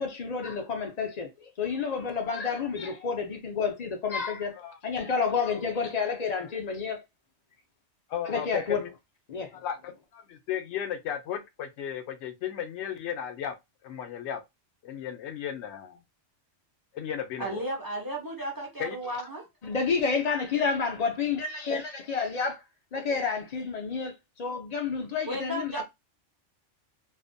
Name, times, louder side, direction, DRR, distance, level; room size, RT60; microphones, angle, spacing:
voice 1, 0.0-4.6 4.8-7.0 8.2-8.8 9.3-9.6 19.6-22.6 22.9-24.1 24.4-25.8, left 5 dB, 55° left, 0.4 m, -30 dB
voice 2, 8.1-8.9 9.5-13.5 13.8-14.4 14.8-16.0 16.9-17.6 18.8-19.2, left 9 dB, 70° left, 0.8 m, -35 dB
voice 3, 17.4-19.4 25.3-25.8, right 1 dB, 25° right, 0.5 m, -34 dB
2.5 x 2.1 x 2.6 m
omnidirectional pair, 1.2 m